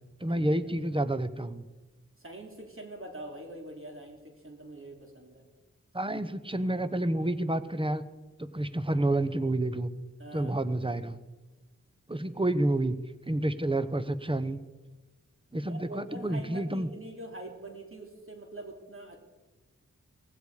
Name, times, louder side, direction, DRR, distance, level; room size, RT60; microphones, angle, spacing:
voice 1, 0.2-1.6 5.9-8.0 8.4-9.9 10.3-11.2 12.1-13.0 13.3-14.6 15.5-16.9, right 1 dB, 15° right, 12 dB, 1.0 m, -29 dB
voice 2, 2.2-5.4 10.2-10.5 15.7-19.2, right 1 dB, 45° right, 2 dB, 3.4 m, -44 dB
17.5 x 15.5 x 5.0 m, 1.2 s
wide cardioid pair, 55°, 30 cm